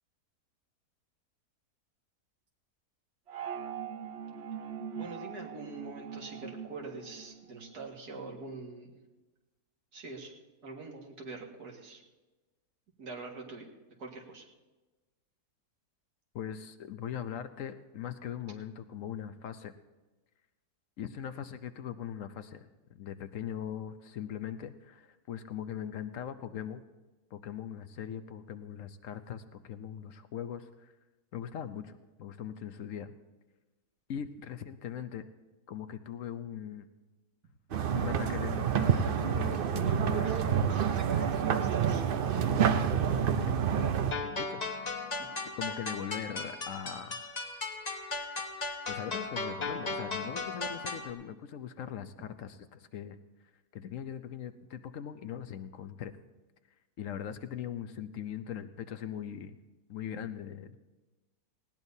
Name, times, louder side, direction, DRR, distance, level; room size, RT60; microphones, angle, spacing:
sound 1, 3.3-7.9, right 7 dB, 50° right, 1.0 m, -42 dB
voice 1, 4.9-8.9 9.9-10.3 10.6-12.0 13.0-13.7 14.0-14.5 40.2-40.4 40.7-42.0 45.2-45.3, right 3 dB, 85° right, 0 dB, 2.4 m, -44 dB
voice 2, 16.3-19.7 21.0-26.8 27.3-30.9 31.3-33.1 34.1-35.2 35.7-36.9 37.9-40.4 41.1-41.7 42.3-43.6 44.1-45.2 45.5-47.2 48.9-53.2 53.7-56.1 57.0-59.6 59.9-60.8, left 9 dB, 65° left, 10 dB, 0.9 m, -40 dB
sound 2, 37.7-44.1, right 8 dB, 65° right, 0.5 m, -28 dB
sound 3, 44.1-51.1, left 3 dB, 30° left, 1.0 m, -37 dB
19.0 x 17.0 x 2.7 m, 1.2 s
omnidirectional pair, 1.7 m